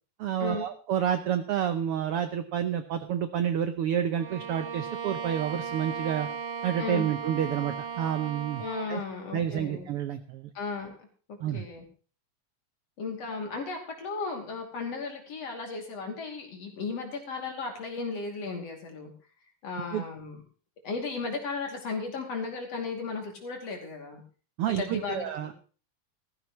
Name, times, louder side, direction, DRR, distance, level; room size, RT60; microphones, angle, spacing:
voice 1, 0.2-6.3 6.6-8.6 8.9-9.0 9.3-10.5 11.4-11.7 19.9-20.0 24.6-25.5, right 9 dB, 80° right, 9 dB, 1.3 m, -29 dB
Bowed string instrument, 4.1-9.0, right 6 dB, 50° right, 1.4 m, -36 dB
voice 2, 8.6-9.9 10.6-11.0 11.3-11.8 13.0-19.1 19.6-20.4 20.8-24.2 24.7-25.5, left 4 dB, 55° left, 1 dB, 3.6 m, -35 dB
16.5 x 14.0 x 3.1 m, 0.38 s
omnidirectional pair, 3.6 m